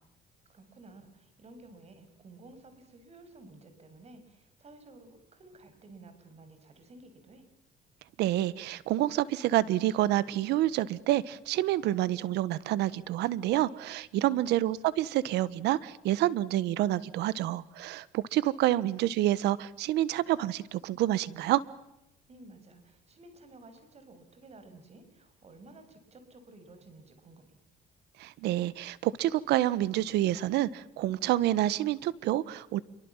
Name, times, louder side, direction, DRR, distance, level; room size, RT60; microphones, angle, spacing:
voice 1, 0.5-7.4 14.1-14.6 22.3-27.6, right 2 dB, 40° right, 9 dB, 7.0 m, -53 dB
voice 2, 8.2-21.6 28.2-32.8, right 14 dB, 85° right, 18 dB, 1.5 m, -28 dB
29.0 x 24.0 x 7.4 m, 0.84 s
cardioid pair, 110°, 17 cm